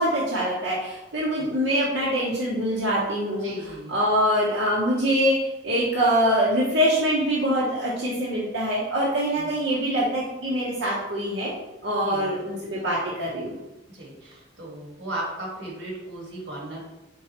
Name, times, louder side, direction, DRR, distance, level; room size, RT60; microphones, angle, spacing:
voice 1, 0.0-3.5 3.9-11.5 11.8-13.5, equal, 90° right, -7 dB, 0.9 m, -24 dB
voice 2, 3.3-3.9 9.3-9.5 12.0-12.4 13.9-16.8, right 1 dB, 70° right, -3 dB, 1.5 m, -36 dB
4.6 x 3.7 x 2.9 m, 0.97 s
head